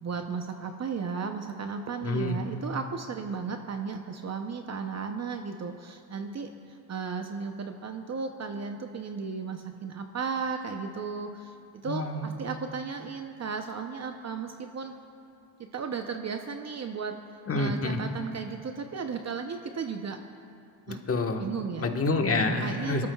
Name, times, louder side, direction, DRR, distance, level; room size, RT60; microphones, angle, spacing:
voice 1, 0.0-6.5 6.9-14.9 15.7-17.2 17.5-20.2 20.9-21.0 21.4-21.9 22.6-23.1, right 5 dB, 40° right, 5 dB, 0.8 m, -35 dB
voice 2, 2.0-2.4 11.8-12.3 17.5-18.0 21.1-21.5 21.8-23.1, left 2 dB, 35° left, 3 dB, 1.4 m, -27 dB
24.0 x 13.5 x 2.3 m, 2.5 s
cardioid pair, 100°, 41 cm